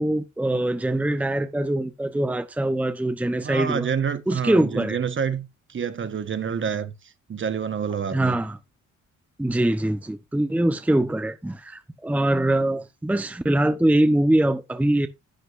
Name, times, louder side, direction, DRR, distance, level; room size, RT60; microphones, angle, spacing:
voice 1, 0.0-3.9 4.3-5.0 8.1-8.6 9.4-15.1, right 1 dB, 5° right, 0.8 m, -23 dB
voice 2, 3.4-6.9 7.3-8.4, right 7 dB, 40° right, 1.2 m, -28 dB
11.5 x 7.8 x 2.6 m
cardioid pair, 90°, 30 cm